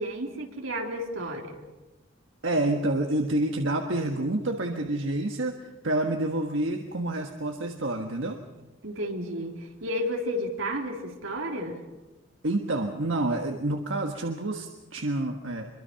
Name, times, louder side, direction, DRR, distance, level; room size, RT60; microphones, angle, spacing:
voice 1, 0.0-1.6 8.8-11.8, equal, 90° right, 1 dB, 3.4 m, -32 dB
voice 2, 2.4-8.7 12.4-15.8, right 1 dB, 70° right, 3 dB, 1.5 m, -28 dB
25.0 x 23.0 x 5.8 m, 1.1 s
head